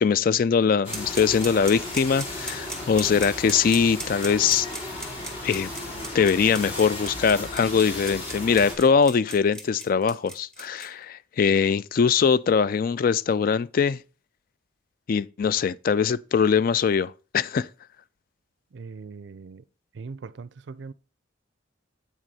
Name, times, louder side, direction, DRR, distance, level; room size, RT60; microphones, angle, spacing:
voice 1, 0.0-4.7 5.4-5.7 6.1-14.0 15.1-17.7, left 6 dB, 45° left, 0.3 m, -22 dB
sound 1, 0.8-8.7, left 1 dB, 30° left, 2.8 m, -35 dB
sound 2, 0.9-10.9, right 1 dB, 5° left, 1.5 m, -37 dB
voice 2, 18.7-19.6 19.9-20.9, right 4 dB, 60° right, 0.4 m, -40 dB
8.3 x 6.2 x 4.1 m
head